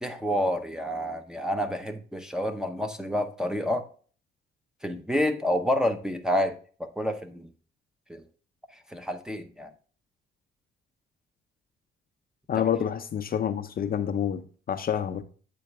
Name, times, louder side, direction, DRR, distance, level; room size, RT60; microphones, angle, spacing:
voice 1, 0.0-3.8 4.8-7.5 8.1-8.2 8.9-9.7 12.6-12.7, equal, 5° right, 0.7 m, -29 dB
voice 2, 12.5-14.4 14.7-15.2, left 8 dB, 45° left, 0.5 m, -27 dB
8.4 x 3.9 x 3.4 m
cardioid pair, 90°, 20 cm